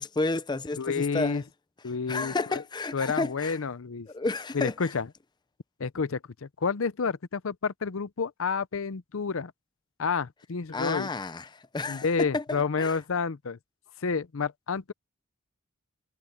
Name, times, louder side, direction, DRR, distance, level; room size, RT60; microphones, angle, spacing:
voice 1, 0.0-1.4 2.1-3.6 4.1-4.9 10.7-13.0, left 3 dB, 20° left, 0.5 m, -31 dB
voice 2, 0.8-1.4 1.8-2.6 2.9-4.1 4.5-5.1 5.8-9.5 10.0-11.1 11.9-13.6 14.0-14.9, left 5 dB, 65° left, 0.6 m, -30 dB
head